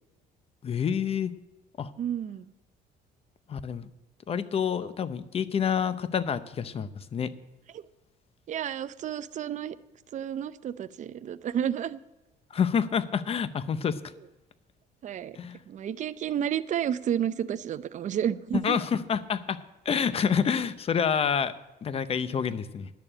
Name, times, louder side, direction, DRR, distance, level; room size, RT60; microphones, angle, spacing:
voice 1, 0.6-1.3 1.8-1.9 3.5-3.9 4.3-7.3 12.5-14.0 15.3-15.6 18.5-21.5 21.8-22.9, left 7 dB, 35° left, 15 dB, 0.7 m, -28 dB
voice 2, 2.0-2.5 7.7-7.8 8.5-9.8 10.1-12.0 15.0-15.4 15.7-18.8, right 9 dB, 45° right, 13 dB, 0.6 m, -31 dB
10.5 x 6.9 x 8.6 m, 1.0 s
cardioid pair, 110°, 17 cm